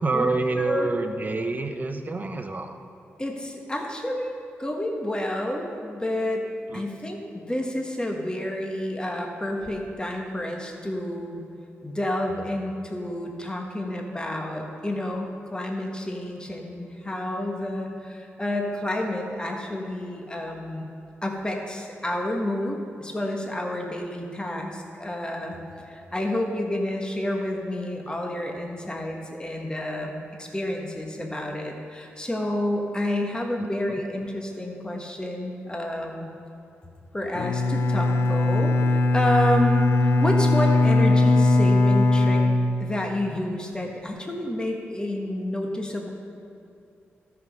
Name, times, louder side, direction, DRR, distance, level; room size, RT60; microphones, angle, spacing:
voice 1, 0.0-2.8 6.7-6.8 33.8-33.9, right 3 dB, 35° right, 6 dB, 1.0 m, -27 dB
voice 2, 0.6-0.9 3.2-6.5 6.7-11.4 11.8-20.9 21.2-25.6 25.9-36.3 37.1-42.4 42.8-46.1, left 1 dB, 20° left, 1 dB, 1.5 m, -29 dB
Bowed string instrument, 37.3-43.4, left 2 dB, 70° left, 0.7 m, -20 dB
13.0 x 6.2 x 5.3 m, 2.7 s
cardioid pair, 60°, 5 cm